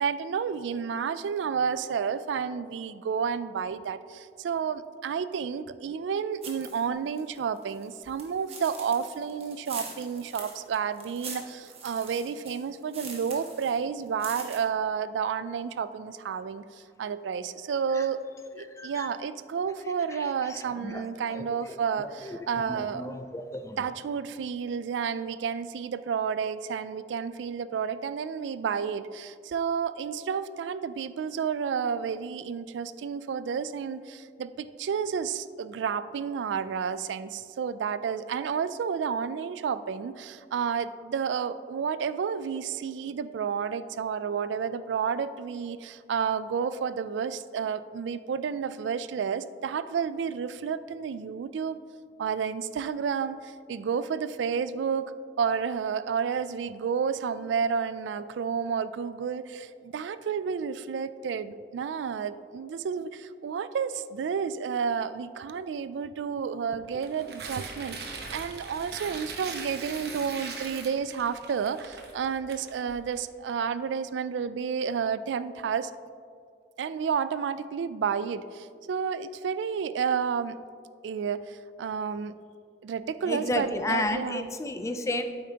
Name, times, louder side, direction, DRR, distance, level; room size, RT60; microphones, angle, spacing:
voice 1, 0.0-16.6 17.0-18.2 18.5-23.1 23.8-51.8 52.2-55.1 55.4-75.9 76.8-80.6 81.0-82.3 82.8-84.5, right 6 dB, 85° right, 14 dB, 0.3 m, -31 dB
sound 1, 6.4-6.9 7.2-13.8 14.1-14.6, right 4 dB, 35° right, 1.1 m, -43 dB
voice 2, 18.8-19.1 20.5-21.0 21.3-21.8 22.2-23.8 83.3-85.3, left 2 dB, 15° left, 7 dB, 0.4 m, -32 dB
Tearing, 66.9-73.2, right 4 dB, 60° right, 1.0 m, -41 dB
8.7 x 8.4 x 2.9 m, 2.3 s
head